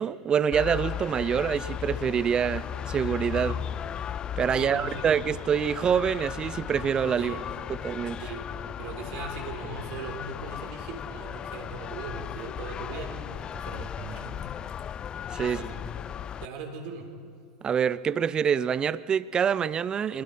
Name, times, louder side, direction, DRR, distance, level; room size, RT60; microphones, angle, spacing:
voice 1, 0.0-3.6 4.4-7.3 7.7-8.2 15.3-15.6 17.6-20.2, right 7 dB, 30° right, 0.6 m, -26 dB
sound 1, 0.5-16.5, left 9 dB, 30° left, 0.4 m, -36 dB
voice 2, 4.5-5.2 7.2-7.4 8.2-8.5 8.8-14.4 15.4-15.8 16.4-17.1, right 4 dB, 55° right, 3.7 m, -39 dB
24.5 x 20.5 x 5.5 m
hypercardioid pair, 85°, 3 cm